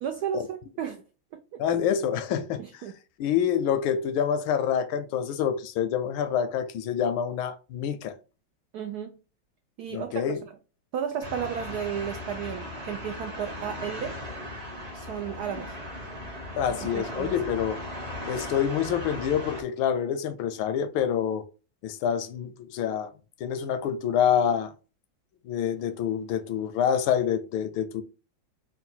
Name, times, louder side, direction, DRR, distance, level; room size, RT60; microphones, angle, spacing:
voice 1, 0.0-1.0 2.6-2.9 8.7-9.1 9.8-10.3 10.9-14.2 14.9-15.8 16.7-17.3, right 8 dB, 85° right, 0.8 m, -33 dB
voice 2, 1.6-2.6 3.2-8.1 9.9-10.4 16.6-17.8 18.3-21.4 21.8-23.1 23.4-24.7 25.4-28.0, left 8 dB, 85° left, 1.4 m, -27 dB
sound 1, 11.2-19.6, left 1 dB, 40° right, 0.6 m, -37 dB
3.8 x 2.2 x 4.3 m
omnidirectional pair, 2.2 m